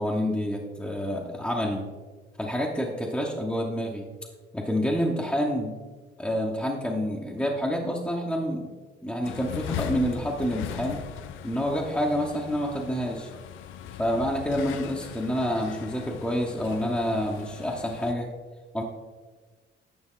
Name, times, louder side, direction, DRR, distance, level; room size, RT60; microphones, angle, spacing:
voice 1, 0.0-1.9 2.4-4.1 4.5-5.8 6.2-8.7 9.0-11.0 11.4-13.3 14.0-18.3 18.7-18.8, equal, 5° left, -1 dB, 1.0 m, -28 dB
sound 1, 9.2-18.1, left 9 dB, 80° left, 0.5 m, -39 dB
10.0 x 5.5 x 3.7 m, 1.4 s
cardioid pair, 90°, 20 cm